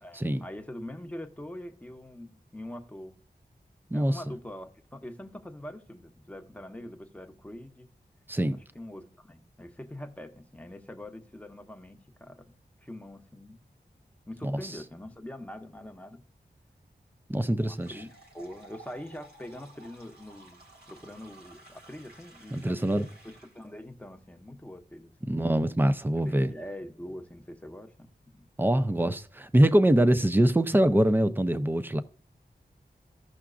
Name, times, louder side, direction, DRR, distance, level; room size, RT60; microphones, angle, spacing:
voice 1, 0.0-3.1 3.9-7.9 8.5-13.6 14.3-16.2 17.3-18.1 18.3-20.6 20.9-22.9 23.2-25.1 26.3-28.5, left 1 dB, 10° left, 0.9 m, -44 dB
voice 2, 8.3-8.6 14.4-14.6 17.3-17.9 22.5-23.1 25.3-26.5 28.6-32.0, right 1 dB, 10° right, 0.6 m, -24 dB
faucet glass tall, 17.7-23.7, right 2 dB, 75° right, 2.1 m, -54 dB
15.5 x 5.8 x 2.5 m
wide cardioid pair, 75°, 17 cm